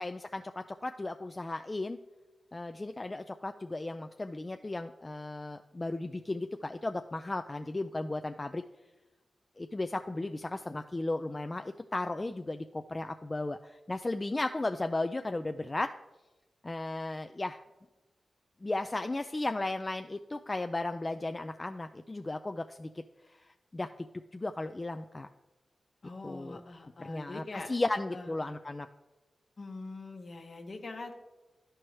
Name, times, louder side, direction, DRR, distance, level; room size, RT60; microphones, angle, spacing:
voice 1, 0.0-2.0 2.5-8.6 9.6-15.9 16.6-17.6 18.6-22.9 23.7-24.1 24.3-25.3 26.2-26.6 27.0-28.9, left 2 dB, 35° left, 7 dB, 0.3 m, -35 dB
voice 2, 26.0-27.7 28.1-28.3 29.6-31.1, left 3 dB, 60° left, 4 dB, 1.0 m, -43 dB
12.0 x 4.5 x 3.1 m, 1.1 s
cardioid pair, 45°, 0 cm